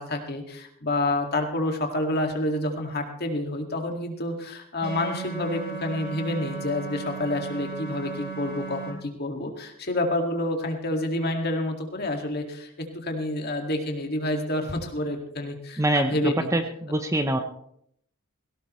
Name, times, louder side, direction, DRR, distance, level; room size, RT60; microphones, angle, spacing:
voice 1, 0.0-16.5, left 1 dB, 45° left, 3 dB, 2.0 m, -28 dB
sound 1, 4.8-8.9, right 5 dB, 45° right, 3.3 m, -36 dB
voice 2, 15.8-17.4, right 1 dB, 15° right, 7 dB, 0.7 m, -25 dB
17.5 x 17.0 x 3.1 m, 0.71 s
head